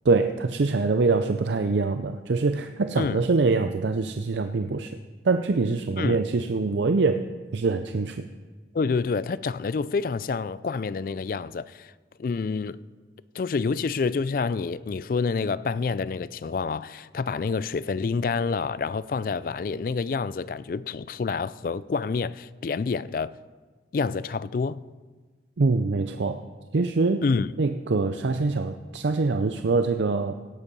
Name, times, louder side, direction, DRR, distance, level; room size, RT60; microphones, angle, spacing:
voice 1, 0.1-4.9 5.3-7.2 7.5-8.2 25.6-26.4 26.7-27.2 27.6-30.3, right 3 dB, 80° right, 0.5 m, -24 dB
voice 2, 8.7-11.9 12.2-12.8 13.3-23.4 23.9-24.8 27.2-27.5, left 4 dB, 50° left, 0.3 m, -28 dB
17.0 x 8.2 x 5.3 m
head